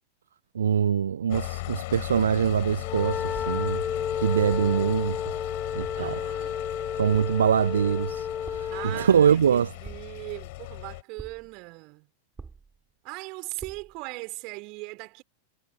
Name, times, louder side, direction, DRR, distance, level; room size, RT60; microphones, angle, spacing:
voice 1, 0.5-3.8 4.2-5.2 5.7-6.2 6.9-9.7, right 8 dB, 65° right, 0.4 m, -24 dB
sound 1, 1.3-11.0, left 23 dB, 50° left, 7.3 m, -37 dB
Wind instrument woodwind instrument, 2.8-9.1, left 8 dB, 25° left, 0.3 m, -32 dB
sound 2, 3.3-3.8 4.5-4.9 5.8-6.2 7.1-7.6 8.5-8.9 9.8-10.4 11.2-11.6 12.4-12.9 13.6-14.0, right 4 dB, 15° right, 4.5 m, -45 dB
voice 2, 5.9-6.6 7.2-7.3 8.7-12.1 13.0-15.2, right 27 dB, 45° right, 4.6 m, -39 dB
figure-of-eight pair, 90°, 0 cm